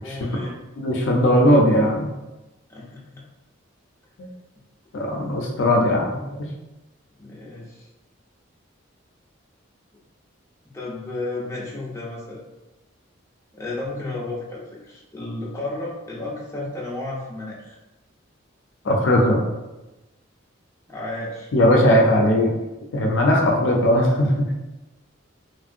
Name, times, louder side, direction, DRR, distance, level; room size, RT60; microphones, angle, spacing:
voice 1, 0.0-0.6 2.7-3.2 7.2-7.9 10.7-12.4 13.5-17.8 20.9-21.5, left 2 dB, 15° left, -5 dB, 0.5 m, -33 dB
voice 2, 0.8-2.1 4.2-4.3 4.9-6.5 18.8-19.4 21.5-22.5 22.9-24.3, equal, 65° left, 0 dB, 0.5 m, -18 dB
3.0 x 2.6 x 2.5 m, 1.0 s
head